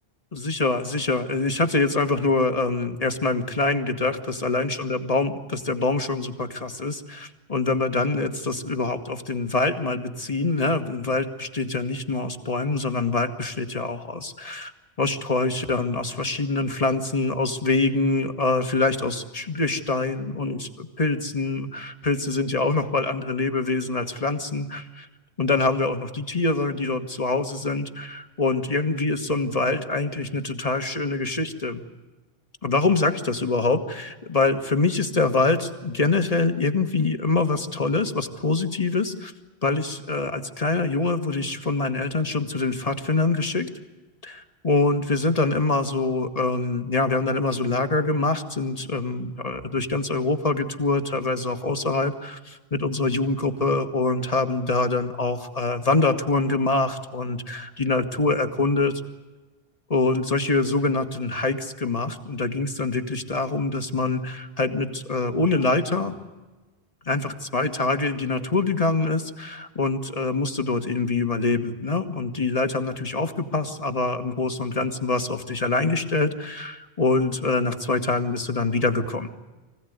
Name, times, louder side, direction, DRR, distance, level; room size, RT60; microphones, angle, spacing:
voice 1, 0.3-14.7 15.0-25.1 25.4-31.8 32.6-39.3 39.6-43.7 44.2-59.0 59.9-66.1 67.1-79.3, left 3 dB, 40° left, 7 dB, 1.6 m, -25 dB
24.5 x 16.5 x 9.4 m, 1.2 s
omnidirectional pair, 1.0 m